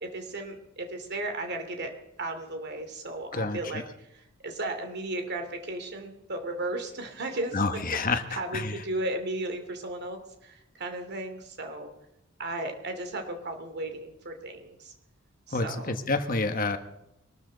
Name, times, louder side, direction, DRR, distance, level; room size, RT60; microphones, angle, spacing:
voice 1, 0.0-1.9 2.2-7.6 8.1-11.9 12.4-14.9 15.5-16.0, right 2 dB, 55° right, 6 dB, 2.7 m, -35 dB
voice 2, 3.3-3.8 7.5-8.8 15.5-16.8, left 3 dB, 45° left, 8 dB, 1.3 m, -29 dB
23.0 x 13.0 x 4.0 m, 0.83 s
head